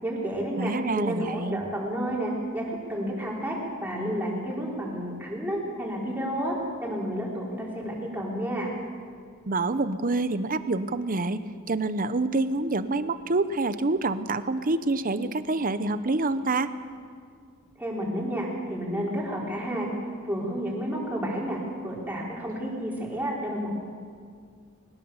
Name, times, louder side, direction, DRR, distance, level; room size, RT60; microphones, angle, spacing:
voice 1, 0.0-6.5 6.8-8.7 17.8-19.9 20.2-23.7, equal, 10° right, -4 dB, 4.7 m, -31 dB
voice 2, 0.6-1.6 9.5-11.4 11.7-16.7, right 2 dB, 45° right, 12 dB, 0.9 m, -27 dB
21.5 x 20.0 x 7.2 m, 2.1 s
head